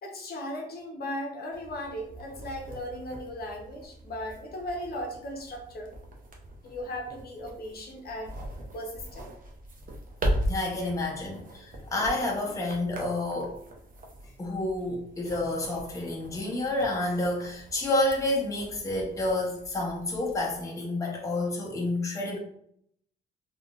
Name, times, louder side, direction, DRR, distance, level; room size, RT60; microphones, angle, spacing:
voice 1, 0.0-5.9 6.6-8.3 8.7-9.3, left 1 dB, 50° left, 0 dB, 0.8 m, -37 dB
sound 1, 1.5-20.6, right 1 dB, 45° right, 0.7 m, -39 dB
voice 2, 10.4-13.6 14.4-22.4, left 2 dB, 15° left, -2 dB, 0.8 m, -29 dB
3.5 x 2.5 x 2.4 m, 0.69 s
cardioid pair, 90°, 20 cm